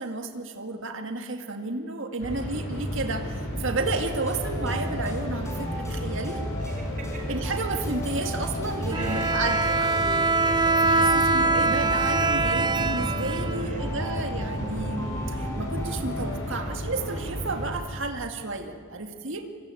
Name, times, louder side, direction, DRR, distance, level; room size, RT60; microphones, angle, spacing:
voice 1, 0.0-6.4 7.3-9.9 10.4-19.5, right 3 dB, 60° right, 5 dB, 2.0 m, -32 dB
sound 1, 2.2-17.7, equal, 65° left, 7.9 m, -33 dB
voice 2, 2.2-2.6 6.3-7.4 8.9-10.1 13.5-14.5 16.4-16.8, right 2 dB, 40° right, 4 dB, 4.6 m, -44 dB
sound 2, 3.8-16.4, equal, 15° left, 4.9 m, -35 dB
Bowed string instrument, 8.9-13.9, right 3 dB, 20° right, 0.8 m, -23 dB
25.5 x 24.5 x 9.1 m, 2.1 s
head